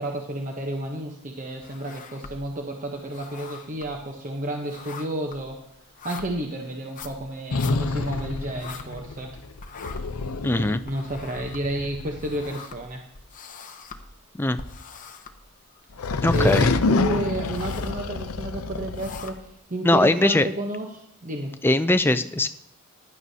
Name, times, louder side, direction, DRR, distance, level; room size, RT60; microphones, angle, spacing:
voice 1, 0.0-5.6 6.0-9.3 10.9-13.0 16.0-21.5, right 1 dB, 35° right, 2 dB, 0.9 m, -31 dB
sound 1, 1.6-2.6 2.9-9.3 9.6-15.8 16.1-17.0 17.3-18.0 18.6-19.6, left 5 dB, 35° left, 0.8 m, -43 dB
sound 2, 7.5-12.5 15.9-19.3, left 3 dB, 70° left, 0.6 m, -27 dB
voice 2, 10.4-10.8 14.4-14.6 16.2-16.7 19.8-20.5 21.6-22.5, left 2 dB, 10° left, 11 dB, 0.4 m, -20 dB
15.5 x 11.0 x 2.8 m, 0.76 s
head